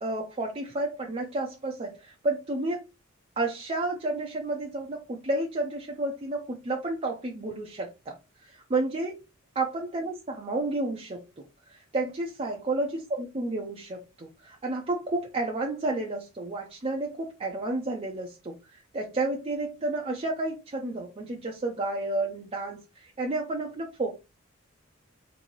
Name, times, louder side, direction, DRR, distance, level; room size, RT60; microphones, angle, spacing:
voice 1, 0.0-2.9 3.4-9.2 9.6-24.2, right 2 dB, 30° right, 0.5 m, -31 dB
4.0 x 2.7 x 3.0 m
head